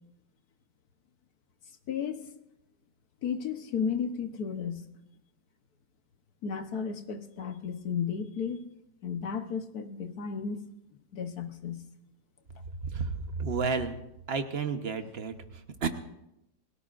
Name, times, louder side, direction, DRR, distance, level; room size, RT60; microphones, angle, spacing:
voice 1, 1.9-2.3 3.2-4.8 6.4-8.7 9.0-10.6 11.1-11.8, left 6 dB, 65° left, 8 dB, 1.5 m, -33 dB
voice 2, 12.9-13.9 14.3-15.9, right 5 dB, 40° right, 7 dB, 1.2 m, -31 dB
29.0 x 17.5 x 2.5 m, 0.86 s
omnidirectional pair, 1.9 m